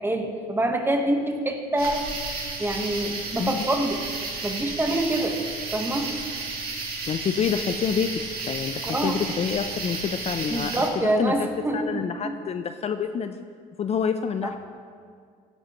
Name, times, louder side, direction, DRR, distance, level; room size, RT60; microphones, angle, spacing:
voice 1, 0.0-2.2 2.6-4.0 4.4-5.4 5.7-6.1 8.8-9.2 10.5-12.4 14.4-14.5, right 1 dB, 15° right, 4 dB, 1.2 m, -26 dB
sound 1, 1.8-10.9, right 3 dB, 60° right, 2.3 m, -33 dB
voice 2, 7.1-8.1 8.4-11.5 11.7-13.5 13.8-14.6, left 7 dB, 40° left, 9 dB, 0.4 m, -27 dB
16.0 x 9.8 x 3.0 m, 2.1 s
cardioid pair, 110°, 17 cm